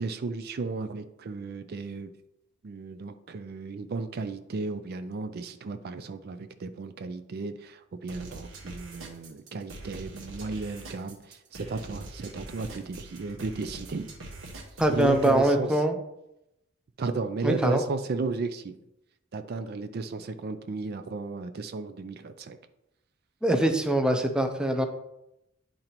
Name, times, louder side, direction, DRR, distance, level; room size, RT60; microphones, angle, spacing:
voice 1, 0.0-2.1 2.6-14.1 14.9-15.7 17.0-18.8 19.3-22.6, right 4 dB, 50° right, 9 dB, 0.4 m, -34 dB
sound 1, 8.1-15.5, right 2 dB, 80° right, 1.3 m, -43 dB
voice 2, 14.8-16.0 17.4-17.8 23.4-24.8, right 1 dB, 5° right, 4 dB, 0.5 m, -23 dB
10.5 x 3.9 x 2.9 m, 0.87 s
head